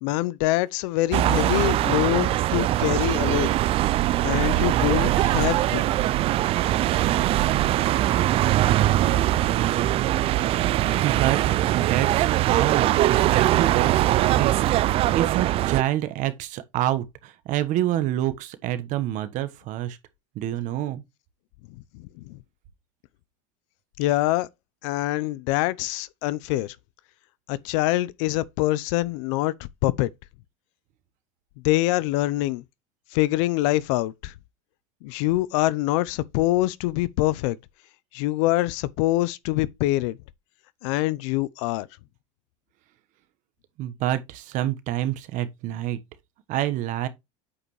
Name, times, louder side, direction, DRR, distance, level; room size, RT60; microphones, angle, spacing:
voice 1, 0.0-3.5 4.2-5.8 21.9-22.4 24.0-24.5 24.8-26.7 27.5-29.5 29.8-30.1 31.6-32.6 33.1-34.3 35.0-37.6 38.1-40.2 40.8-41.9, left 17 dB, 70° left, 0.6 m, -24 dB
sound 1, 1.1-15.8, right 14 dB, 35° right, 0.3 m, -22 dB
voice 2, 8.6-9.4 10.7-11.4 11.7-14.5 15.1-20.0 20.3-21.0 43.8-46.0 46.5-47.1, right 13 dB, 50° right, 1.2 m, -27 dB
8.5 x 5.0 x 3.1 m
supercardioid pair, 130°, 16 cm